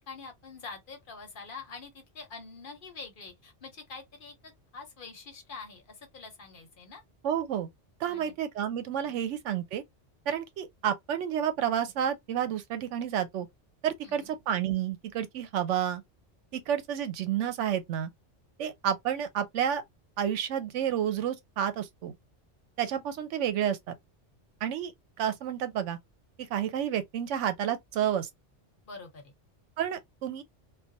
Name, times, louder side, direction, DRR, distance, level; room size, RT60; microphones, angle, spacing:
voice 1, 0.1-7.0 8.0-8.3 9.0-9.2 14.0-14.3 28.9-29.3, left 4 dB, 50° left, 0.8 m, -45 dB
voice 2, 7.2-7.7 8.0-9.8 10.3-13.5 13.8-16.0 16.5-18.1 18.6-19.8 20.2-22.2 22.8-24.0 24.6-24.9 25.2-26.0 26.5-28.3 29.8-30.4, right 9 dB, 85° right, 0.9 m, -30 dB
2.4 x 2.2 x 2.6 m
omnidirectional pair, 1.2 m